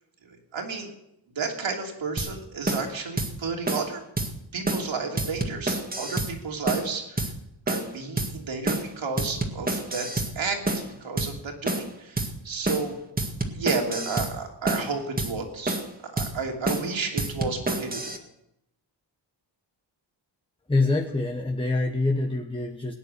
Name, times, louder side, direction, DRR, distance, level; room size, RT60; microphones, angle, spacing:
voice 1, 0.3-0.9 1.3-4.0 4.5-7.3 7.7-10.1 10.3-10.6 11.0-13.0 13.5-15.8 16.0-18.1, right 4 dB, 75° right, 2 dB, 3.0 m, -32 dB
sound 1, 2.2-2.3 2.7-2.9 3.2-3.3 3.7-3.9 4.2-4.3 4.7-4.9 5.2-6.3 6.7-6.9 7.2-7.3 7.7-7.9 8.2-8.3 8.7-8.9 9.2-10.3 10.7-10.9 11.2-11.3 11.7-11.9 12.2-12.3 12.7-12.9 13.2-14.3 14.7-14.9 15.2-15.3 15.7-15.9 16.2-16.3 16.7-16.9 17.2-18.2, right 2 dB, 20° right, 1.8 m, -28 dB
voice 2, 20.7-22.9, left 2 dB, 10° left, 4 dB, 1.0 m, -25 dB
18.0 x 9.8 x 6.7 m, 0.83 s
wide cardioid pair, 125°, 46 cm